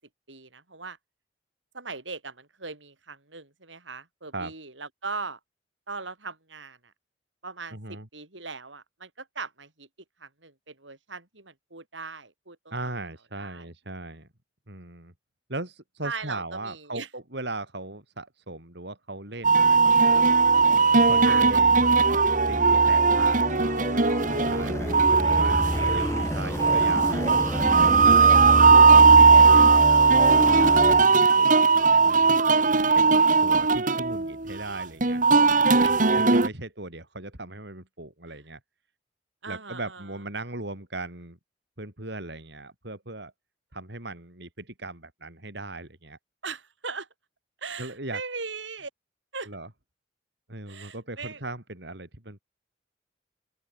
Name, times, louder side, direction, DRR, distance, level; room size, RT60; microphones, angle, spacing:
voice 1, 0.3-1.0 1.7-5.4 5.9-6.9 7.4-9.9 10.2-12.7 13.4-13.7 16.0-17.1 21.2-21.4 35.8-36.0 38.3-38.4 39.4-40.1 46.4-47.1 47.6-48.9 49.3-49.5 50.7-51.4, right 4 dB, 85° right, 7.8 m, -39 dB
voice 2, 7.7-8.1 12.7-14.3 14.7-15.1 15.5-20.2 21.0-22.0 22.5-23.9 24.3-27.2 27.7-29.7 30.1-32.3 32.9-35.2 35.8-38.6 39.5-41.4 41.8-43.3 43.7-46.2 47.8-48.2 49.5-49.7 50.5-52.4, right 2 dB, 65° right, 6.0 m, -38 dB
sound 1, 19.4-36.5, right 4 dB, 45° right, 1.9 m, -18 dB
sound 2, 19.6-31.1, equal, 15° left, 5.4 m, -30 dB
open air
head